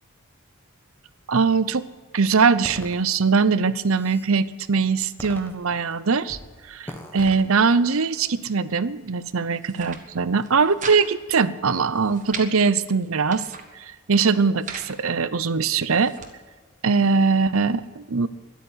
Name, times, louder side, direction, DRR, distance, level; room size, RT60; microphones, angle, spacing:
voice 1, 1.3-1.8 2.1-6.4 6.7-13.4 13.7-16.1 16.8-18.3, right 5 dB, 70° right, 16 dB, 0.7 m, -21 dB
sound 1, 2.6-3.0 3.6-4.3 5.2-5.9 6.3-6.5 6.9-7.4, left 1 dB, 10° left, 1.5 m, -40 dB
sound 2, 9.5-10.0 10.4-11.0 11.3-11.4 11.8-12.5 13.0-13.7 14.3-14.9 15.6-16.3, right 5 dB, 35° right, 1.5 m, -37 dB
13.0 x 11.5 x 8.0 m, 1.4 s
head